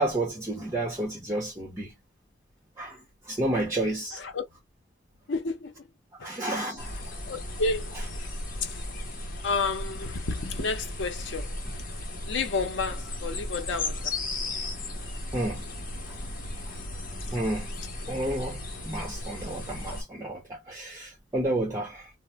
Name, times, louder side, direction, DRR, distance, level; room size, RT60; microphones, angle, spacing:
voice 1, 0.0-1.9 2.8-3.0 3.3-4.2 6.2-7.0 15.3-15.6 16.7-16.8 17.3-17.7 18.1-22.1, right 1 dB, 15° right, 0.9 m, -31 dB
voice 2, 5.3-5.8 6.2-6.3 7.3-7.9 8.2-8.3 8.6-8.7 9.4-11.5 12.3-14.0, left 4 dB, 80° left, 0.7 m, -30 dB
sound 1, 6.8-20.0, left 1 dB, 50° left, 0.9 m, -36 dB
2.5 x 2.1 x 3.0 m
head